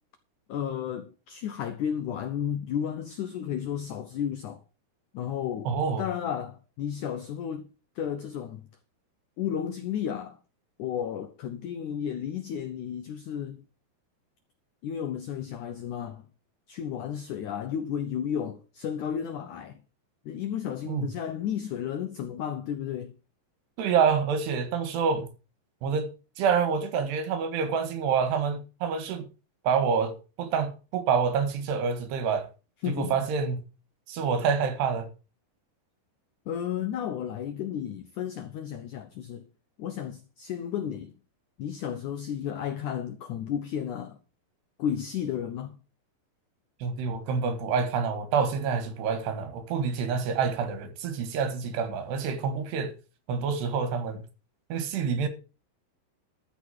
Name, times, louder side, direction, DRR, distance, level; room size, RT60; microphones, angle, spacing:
voice 1, 0.5-4.6 5.1-5.7 6.0-8.7 9.4-10.4 10.8-13.6 14.8-16.2 16.7-19.8 20.2-23.2 32.8-33.2 36.5-39.5 39.8-41.1 41.6-44.2 44.8-45.8, left 9 dB, 90° left, 1.7 m, -33 dB
voice 2, 5.7-6.1 20.9-21.1 23.8-25.3 25.8-26.1 26.4-29.3 29.6-32.5 32.9-33.6 34.1-35.1 46.8-52.9 53.3-54.2 54.7-55.3, right 6 dB, 80° right, 3.8 m, -27 dB
13.5 x 6.1 x 6.4 m
omnidirectional pair, 4.8 m